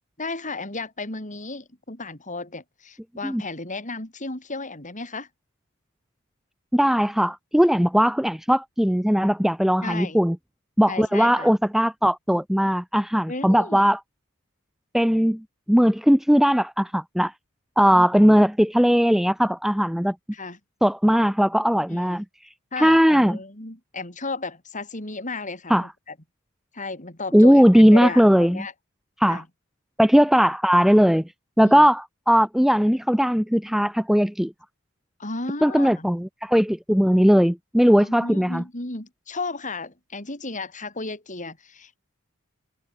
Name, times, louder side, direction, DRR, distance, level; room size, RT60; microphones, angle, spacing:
voice 1, 0.2-5.3 9.8-10.2 10.9-11.5 13.3-13.8 17.8-18.4 20.3-20.6 21.9-22.2 22.7-26.1 26.7-28.7 29.3-29.5 31.6-31.9 35.2-36.1 38.0-42.0, left 3 dB, 35° left, 5.0 m, -34 dB
voice 2, 6.7-10.4 10.8-14.0 14.9-17.3 17.8-20.1 20.8-23.4 25.7-25.9 27.3-28.7 29.2-29.4 30.0-31.3 31.6-34.5 35.6-38.6, equal, ahead, 0.7 m, -19 dB
head